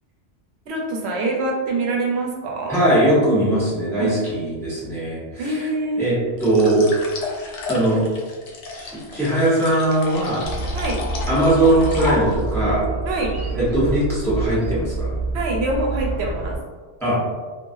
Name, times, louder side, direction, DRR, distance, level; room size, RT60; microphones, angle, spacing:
voice 1, 0.7-2.8 4.0-4.1 5.4-6.0 10.7-11.0 13.1-13.3 15.3-16.6, right 2 dB, 70° right, 0 dB, 0.8 m, -25 dB
voice 2, 2.7-5.7 6.0-6.8 7.7-8.0 8.7-10.4 11.3-12.8 13.5-15.1 17.0-17.2, right 1 dB, ahead, -10 dB, 1.2 m, -20 dB
sound 1, 6.4-12.6, left 3 dB, 85° left, 1.0 m, -32 dB
sound 2, 10.4-16.6, right 2 dB, 45° right, 0.5 m, -27 dB
3.1 x 2.4 x 2.6 m, 1.4 s
omnidirectional pair, 1.2 m